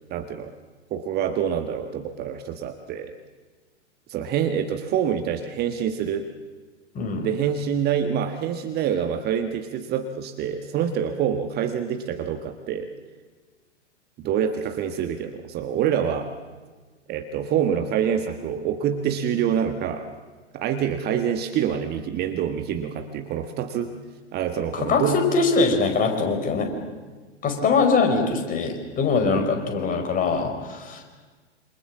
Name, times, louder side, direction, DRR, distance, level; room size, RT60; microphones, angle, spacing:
voice 1, 0.1-0.5 0.9-3.1 4.1-6.3 7.2-12.9 14.2-16.3 17.1-20.1 20.5-24.0 24.3-25.2 27.6-27.7 29.2-29.5, right 8 dB, 25° right, 7 dB, 1.5 m, -26 dB
voice 2, 6.9-7.3 24.7-26.7 27.4-31.0, left 4 dB, 25° left, 4 dB, 4.9 m, -22 dB
27.5 x 27.0 x 7.4 m, 1.4 s
figure-of-eight pair, 100°, 36 cm